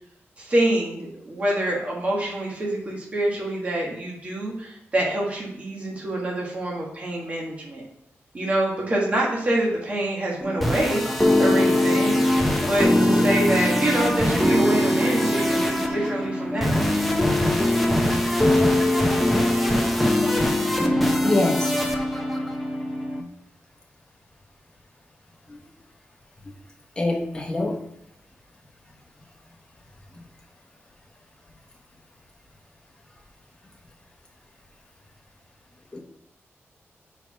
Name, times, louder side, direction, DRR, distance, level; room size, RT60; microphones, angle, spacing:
voice 1, 0.4-7.8 8.3-11.0 11.4-12.2 12.6-16.6, right 1 dB, 30° right, -3 dB, 1.6 m, -26 dB
sound 1, 10.4-23.2, left 1 dB, ahead, 0.7 m, -21 dB
voice 2, 21.2-21.7 25.5-25.6 27.0-27.8 35.9-36.0, left 2 dB, 15° left, 0 dB, 1.2 m, -24 dB
5.1 x 4.6 x 5.9 m, 0.73 s
wide cardioid pair, 165°, 5 cm